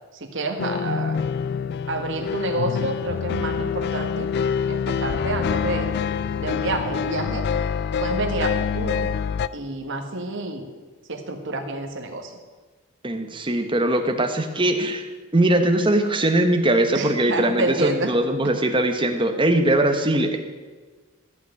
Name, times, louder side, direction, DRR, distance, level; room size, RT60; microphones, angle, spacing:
voice 1, 0.1-1.2 1.9-4.3 4.7-5.9 6.4-7.4 8.0-9.1 9.5-10.7 11.1-12.4 16.9-18.1, right 2 dB, 55° right, 3 dB, 1.6 m, -28 dB
sound 1, 0.6-9.5, left 6 dB, 45° left, 0.3 m, -26 dB
voice 2, 13.0-15.1 15.3-20.4, right 1 dB, 20° right, 6 dB, 1.1 m, -21 dB
14.5 x 6.0 x 9.1 m, 1.4 s
head